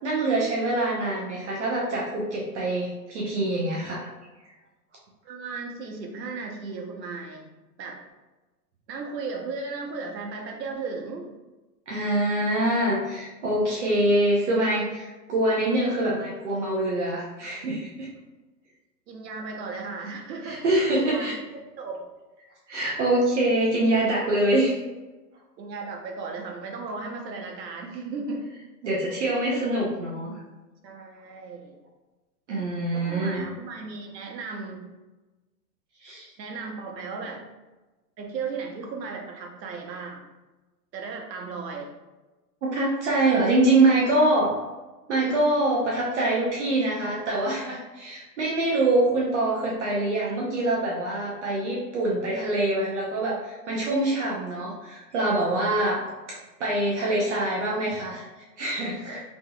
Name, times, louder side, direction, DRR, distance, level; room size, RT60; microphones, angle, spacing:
voice 1, 0.0-4.1 11.9-18.1 20.4-21.4 22.7-24.7 28.8-30.4 32.5-33.4 36.0-36.3 42.7-44.5 45.1-56.0 56.3-59.2, right 1 dB, 45° right, -4 dB, 0.6 m, -25 dB
voice 2, 5.2-7.5 7.8-8.0 8.9-11.3 19.1-20.6 20.9-22.0 25.6-28.5 30.8-31.8 32.9-34.9 36.4-37.4 38.2-40.2 40.9-41.9 55.5-55.6, right 4 dB, 75° right, 2 dB, 0.9 m, -35 dB
3.4 x 3.0 x 2.2 m, 1.2 s
hypercardioid pair, 155°, 50 cm